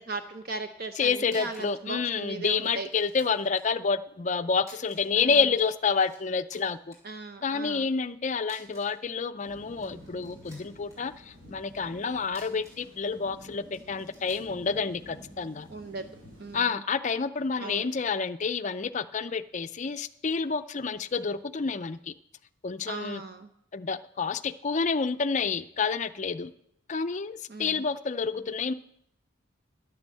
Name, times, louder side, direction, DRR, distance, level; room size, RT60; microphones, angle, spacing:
voice 1, 0.0-2.9 5.2-5.4 7.0-7.9 15.7-16.1 16.4-16.8 17.6-17.9 22.9-23.5 27.5-27.8, right 3 dB, 45° right, 8 dB, 0.7 m, -38 dB
sound 1, 0.9-1.0 1.2-1.8 2.1-2.2 2.6-3.7 4.6-5.2 5.5-6.2 6.5-7.0 8.4-9.0 9.6-11.0 12.2-12.9 13.7-14.5, equal, 15° right, 4.6 m, -54 dB
voice 2, 1.0-6.9 7.4-15.7 16.5-22.1 22.6-23.2 23.7-26.5 26.9-28.7, left 5 dB, 35° left, 11 dB, 0.4 m, -29 dB
sound 2, 9.4-16.6, equal, 90° right, 5.1 m, -50 dB
10.5 x 8.8 x 7.6 m, 0.75 s
head